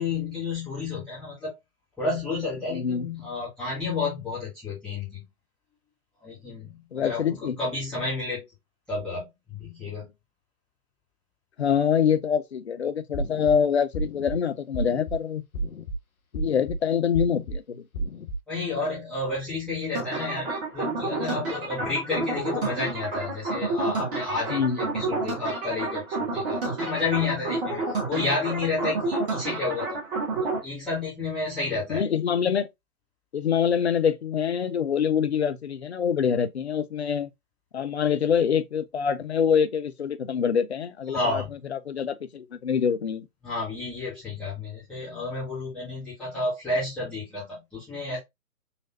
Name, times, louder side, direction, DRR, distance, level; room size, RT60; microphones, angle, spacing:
voice 1, 0.0-1.6 2.0-5.2 6.2-8.4 8.9-10.1 18.5-30.0 30.4-32.0 41.1-41.6 43.4-48.2, left 3 dB, ahead, 1.6 m, -31 dB
voice 2, 2.7-3.1 6.9-7.6 11.6-15.4 16.3-17.8 24.5-24.9 31.9-32.7 33.3-37.3 37.7-41.4 41.7-43.3, left 7 dB, 45° left, 0.5 m, -25 dB
sound 1, 13.1-13.6 13.9-14.4 14.7-15.2 15.5-16.0 16.3-16.8 17.1-17.6 17.9-18.4, right 2 dB, 65° left, 0.9 m, -31 dB
sound 2, 19.9-30.6, right 3 dB, 35° right, 1.6 m, -29 dB
4.1 x 3.1 x 2.6 m
figure-of-eight pair, 135°, 45 cm